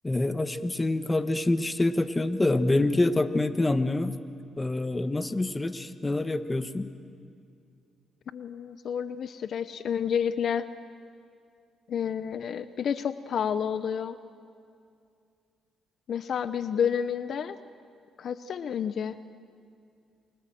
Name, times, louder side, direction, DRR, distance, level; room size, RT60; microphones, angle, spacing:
voice 1, 0.0-4.2 4.6-6.9, left 2 dB, 20° left, 10 dB, 1.3 m, -26 dB
voice 2, 8.3-10.7 11.9-14.2 16.1-17.6 18.2-19.2, left 7 dB, 60° left, 12 dB, 0.8 m, -30 dB
29.5 x 23.5 x 7.8 m, 2.4 s
cardioid pair, 90°, 0 cm